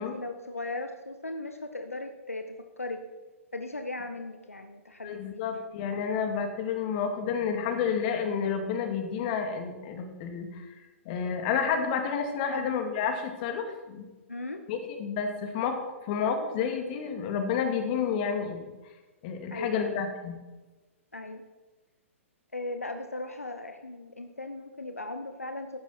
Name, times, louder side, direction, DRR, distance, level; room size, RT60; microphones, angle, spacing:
voice 1, 0.0-3.0 3.5-5.4 12.5-12.7 14.3-14.6 19.5-20.0 21.1-21.4 22.5-25.8, left 2 dB, 85° left, 7 dB, 1.2 m, -37 dB
voice 2, 5.0-10.7 11.0-14.0 14.7-15.8 16.1-18.7 19.2-20.4, left 6 dB, 40° left, 5 dB, 2.4 m, -30 dB
15.0 x 11.5 x 4.4 m, 1.2 s
figure-of-eight pair, 115°, 8 cm